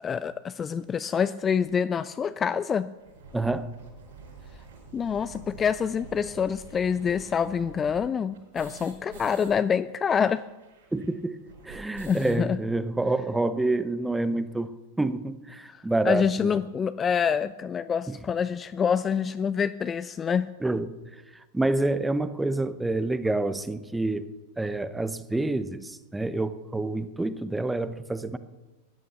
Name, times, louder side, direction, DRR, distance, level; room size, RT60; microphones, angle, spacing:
voice 1, 0.0-2.9 4.9-10.4 12.1-12.6 15.7-20.5, left 7 dB, 20° left, 14 dB, 0.4 m, -26 dB
sound 1, 0.8-0.9 1.6-1.7 2.0-2.1 2.3-2.4 2.8-9.5 9.8-9.9 10.1-12.4, right 4 dB, 60° right, 5.6 m, -47 dB
voice 2, 3.3-3.7 10.9-16.6 18.1-18.2 20.6-21.0 21.3-24.3 24.6-28.4, right 2 dB, 5° right, 13 dB, 0.8 m, -28 dB
15.0 x 11.0 x 6.8 m, 1.1 s
figure-of-eight pair, 90°, 0 cm